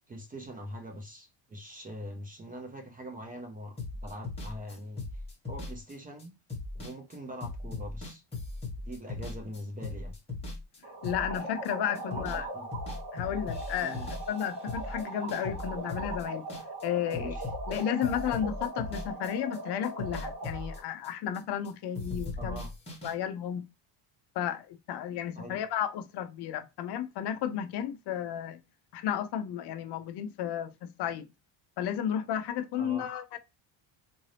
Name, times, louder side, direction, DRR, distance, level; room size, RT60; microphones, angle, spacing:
voice 1, 0.1-5.2 5.5-6.3 6.7-8.2 8.8-10.2 12.1-12.7 13.8-14.1 17.1-17.5 22.4-22.7 25.4-25.6 32.8-33.1, equal, 15° right, 0.6 m, -43 dB
sound 1, 3.8-11.7 11.9-12.4 12.7-16.8 17.1-19.6 19.8-21.7 21.9-23.1, left 3 dB, 10° left, 1.6 m, -39 dB
sound 2, 10.8-20.8, right 2 dB, 45° right, 2.0 m, -40 dB
voice 2, 11.0-12.5 13.1-16.4 16.8-17.4 17.7-22.6 23.0-23.6 24.3-28.6 28.9-31.3 31.8-33.4, left 9 dB, 55° left, 0.5 m, -33 dB
3.8 x 2.6 x 3.2 m
cardioid pair, 160°, 50 cm